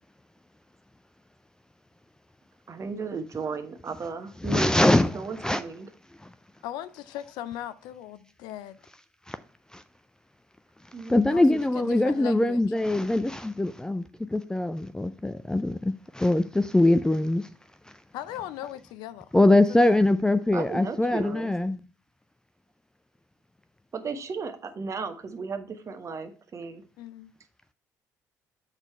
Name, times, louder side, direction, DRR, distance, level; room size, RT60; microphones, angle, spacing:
voice 1, 2.7-5.9 10.9-11.6 20.5-21.5 23.9-26.8, right 4 dB, 40° right, 1.1 m, -35 dB
voice 2, 4.4-5.6 6.2-6.3 9.3-9.4 9.7-9.8 11.0-14.0 14.3-17.5 17.9-18.0 19.3-21.8, left 1 dB, 10° left, 0.4 m, -23 dB
voice 3, 6.6-8.8 11.3-11.4 11.7-12.6 18.1-19.6 19.9-20.0 27.0-27.3, left 12 dB, 70° left, 0.4 m, -38 dB
7.2 x 4.1 x 4.4 m
hypercardioid pair, 55°, 8 cm